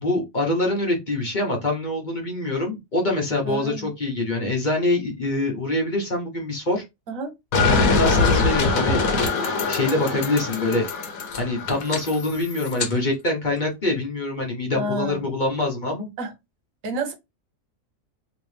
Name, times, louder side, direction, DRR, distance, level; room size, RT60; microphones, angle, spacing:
voice 1, 0.0-6.8 7.7-10.8 11.4-16.1, left 2 dB, 35° left, 1.1 m, -25 dB
voice 2, 3.4-3.9 7.1-7.3 14.7-15.2 16.2-16.3 16.8-17.1, right 1 dB, 75° right, 1.3 m, -29 dB
sound 1, 7.5-12.9, left 4 dB, 85° left, 1.2 m, -23 dB
3.2 x 3.0 x 3.2 m
omnidirectional pair, 1.4 m